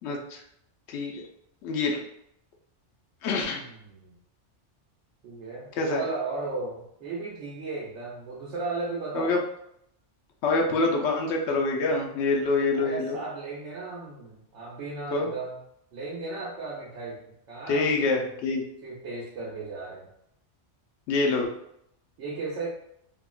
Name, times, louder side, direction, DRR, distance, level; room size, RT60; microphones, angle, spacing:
voice 1, 0.0-0.4 0.9-1.2 1.6-2.0 3.2-3.6 5.8-6.0 9.1-9.4 10.4-13.2 15.1-15.3 17.7-18.6 21.1-21.5, left 3 dB, 75° left, 1 dB, 0.8 m, -26 dB
voice 2, 3.5-4.2 5.2-9.3 12.7-15.6 15.9-17.2 17.5-18.3 18.8-20.1 22.2-22.7, right 3 dB, 85° right, -4 dB, 1.0 m, -35 dB
3.6 x 2.1 x 2.3 m, 0.76 s
omnidirectional pair, 1.2 m